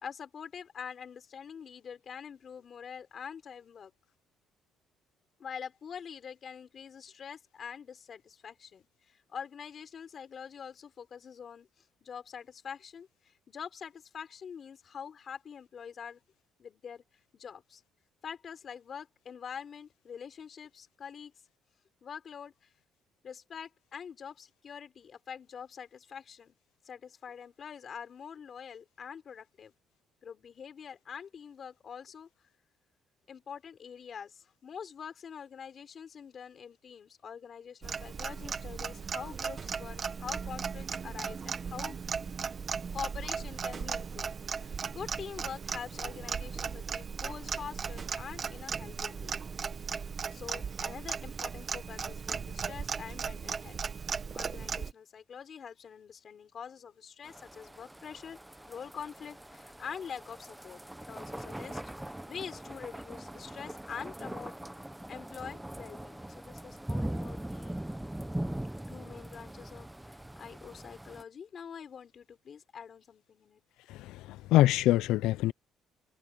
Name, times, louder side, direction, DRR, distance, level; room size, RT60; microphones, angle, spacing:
voice 1, 0.0-3.9 5.4-16.2 16.6-17.0 17.3-17.8 18.2-21.3 22.0-22.5 23.2-26.6 26.8-29.7 30.2-32.3 33.3-42.0 42.9-44.3 44.6-49.4 50.3-53.8 54.3-58.4 58.7-64.5 65.1-67.8 68.9-73.6, left 7 dB, 35° left, 4.7 m, -45 dB
Clock, 37.8-54.9, right 6 dB, 25° right, 1.1 m, -37 dB
sound 1, 57.2-71.2, right 1 dB, 5° right, 0.7 m, -41 dB
voice 2, 73.9-75.5, left 16 dB, 85° left, 0.3 m, -25 dB
cardioid pair, 175°, 0 cm